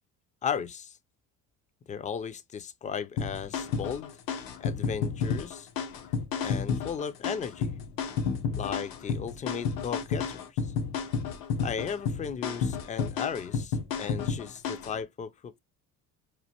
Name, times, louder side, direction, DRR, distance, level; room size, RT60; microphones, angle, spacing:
voice 1, 0.4-1.0 1.9-4.2 4.6-5.7 6.4-7.7 8.6-10.6 11.6-15.6, left 7 dB, 20° left, 0.3 m, -35 dB
sound 1, 3.2-15.0, left 6 dB, 75° left, 0.8 m, -31 dB
4.2 x 2.4 x 2.8 m
cardioid pair, 110°, 36 cm